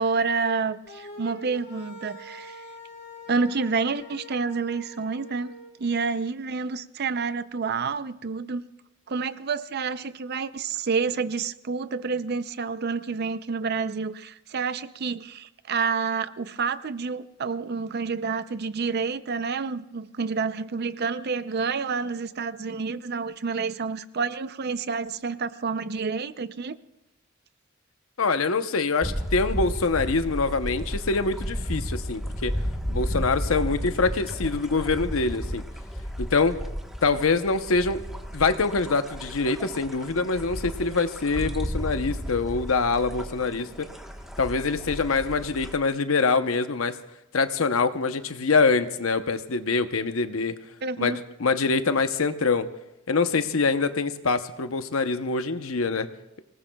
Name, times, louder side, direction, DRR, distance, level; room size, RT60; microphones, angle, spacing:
voice 1, 0.0-2.6 3.3-5.5 5.8-8.6 9.1-26.8 50.8-51.2, right 5 dB, 50° right, 14 dB, 0.5 m, -29 dB
sound 1, 0.8-5.7, left 1 dB, 55° left, 3.7 m, -44 dB
voice 2, 28.2-32.5 32.9-35.6 36.2-36.6 37.0-38.0 38.3-43.9 44.4-47.0 47.3-50.6 51.0-52.7 53.1-56.1, left 4 dB, 85° left, 10 dB, 0.8 m, -24 dB
sound 2, 29.0-45.7, equal, ahead, 1.2 m, -33 dB
26.0 x 19.0 x 2.3 m, 0.93 s
head